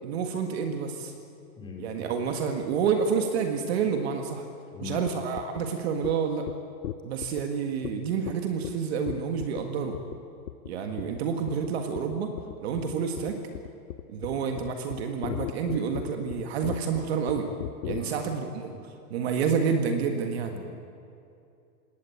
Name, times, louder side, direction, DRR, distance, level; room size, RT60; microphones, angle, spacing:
voice 1, 0.0-1.1 1.8-4.5 4.8-6.5 7.0-10.0 10.7-12.3 12.6-13.4 14.1-17.5 17.8-20.5, right 6 dB, 40° right, 5 dB, 1.8 m, -29 dB
voice 2, 1.6-1.9 4.7-5.1 14.3-14.4 17.9-18.1 20.5-20.7, left 6 dB, 10° left, 0 dB, 2.7 m, -41 dB
sound 1, 5.1-5.2 5.4-5.6 6.0-6.1 6.5-6.6 6.8-7.4 7.8-7.9 8.3-8.4 8.6-8.7 9.1-9.6 9.9-10.2 10.5-10.7 11.0-11.2 11.5-11.7 12.0-18.0, left 13 dB, 65° left, 0.8 m, -35 dB
20.5 x 18.0 x 8.5 m, 2.6 s
supercardioid pair, 175°, 48 cm